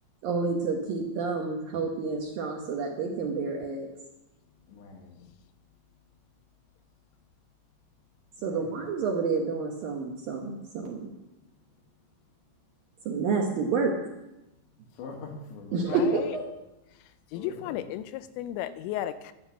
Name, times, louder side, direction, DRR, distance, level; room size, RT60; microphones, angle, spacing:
voice 1, 0.2-3.9 8.4-11.1 13.1-13.9 15.7-16.5, right 4 dB, 75° right, 1 dB, 2.1 m, -29 dB
voice 2, 4.7-5.2 8.4-8.7 15.0-16.1 17.3-17.9, left 4 dB, 65° left, 2 dB, 4.0 m, -43 dB
voice 3, 15.9-16.4 17.3-19.3, left 12 dB, 85° left, 12 dB, 3.2 m, -34 dB
13.0 x 8.1 x 8.4 m, 0.96 s
omnidirectional pair, 5.8 m